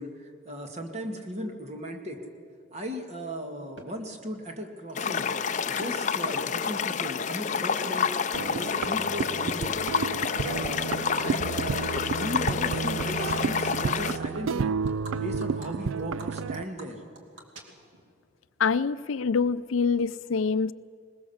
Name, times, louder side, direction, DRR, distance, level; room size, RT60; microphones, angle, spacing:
voice 1, 0.0-2.2 2.7-5.3 5.6-8.1 8.5-9.8 10.4-14.7 15.1-17.0, equal, 35° right, 3 dB, 2.1 m, -37 dB
Animal, 3.8-3.9 4.9-5.0 5.2-6.1 6.5-8.2 8.5-8.8 9.1-9.9 10.2-10.5 10.8-15.1 15.4-15.7 16.0-18.1, right 2 dB, 70° right, 2.6 m, -48 dB
sound 1, 5.0-14.2, left 6 dB, 35° left, 0.5 m, -29 dB
sound 2, 8.3-16.6, right 5 dB, 90° right, 0.4 m, -31 dB
voice 2, 18.6-20.7, left 5 dB, 90° left, 16 dB, 0.5 m, -25 dB
20.5 x 20.5 x 7.2 m, 2.4 s
head